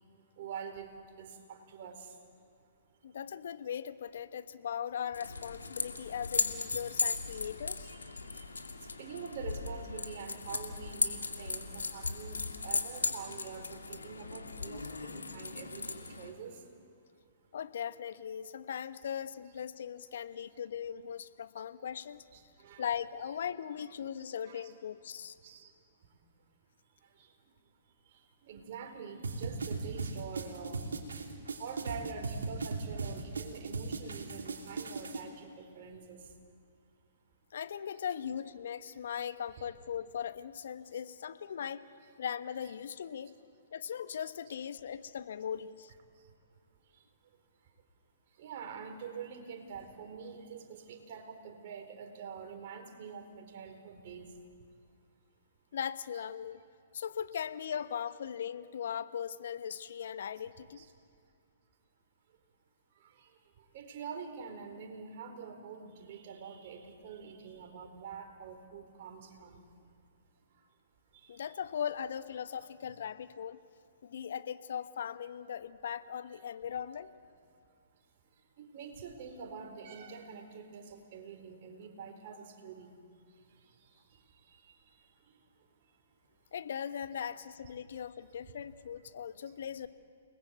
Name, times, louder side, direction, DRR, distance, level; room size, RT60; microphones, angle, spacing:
voice 1, 0.4-0.9 1.2-2.0 6.7-6.8 8.4-8.5 9.0-16.6 22.3-22.8 23.2-23.3 24.4-24.7 25.4-25.7 28.4-30.8 31.6-36.2 39.6-39.7 42.6-42.7 48.4-54.3 60.8-60.9 63.7-69.6 71.1-71.3 78.6-83.0, right 6 dB, 50° right, 4 dB, 4.2 m, -45 dB
voice 2, 3.0-7.9 17.5-22.2 22.8-25.4 37.5-41.9 42.2-43.3 43.7-45.9 55.7-56.6 56.9-60.9 71.3-73.6 74.0-77.1 86.5-89.9, left 8 dB, 65° left, 13 dB, 1.1 m, -39 dB
sound 1, 5.1-16.3, left 4 dB, 85° left, 2.4 m, -37 dB
sound 2, 29.2-35.2, right 4 dB, 75° right, 3.1 m, -38 dB
29.5 x 20.0 x 8.2 m, 2.2 s
figure-of-eight pair, 120°, 0 cm